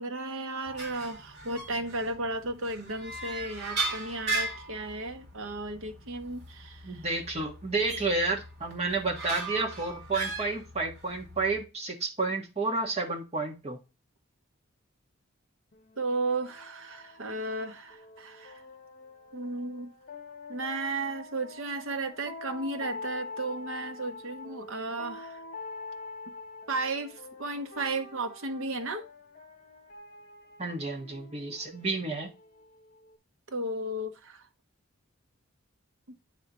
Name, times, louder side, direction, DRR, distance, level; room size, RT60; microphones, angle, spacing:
voice 1, 0.0-7.0 16.0-18.6 19.3-19.9 20.5-25.4 26.7-29.1 33.5-34.4 36.1-36.2, right 2 dB, 75° right, 0.9 m, -34 dB
sound 1, 0.7-11.6, right 3 dB, 55° right, 2.0 m, -38 dB
voice 2, 6.8-13.8 30.6-32.3, right 3 dB, 30° right, 1.5 m, -31 dB
sound 2, 15.7-33.2, left 3 dB, 45° left, 1.1 m, -46 dB
9.0 x 4.2 x 3.0 m
head